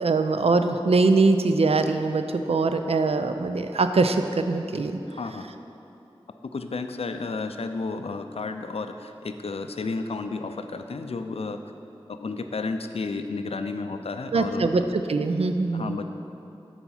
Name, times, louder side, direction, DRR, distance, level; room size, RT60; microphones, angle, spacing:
voice 1, 0.0-4.9 14.3-14.8 15.1-16.0, right 3 dB, 80° right, 8 dB, 0.4 m, -22 dB
voice 2, 5.1-5.5 6.5-11.6 12.1-14.7 15.7-16.1, left 3 dB, 80° left, 8 dB, 0.4 m, -32 dB
6.9 x 4.2 x 5.6 m, 2.8 s
wide cardioid pair, 50°, 10 cm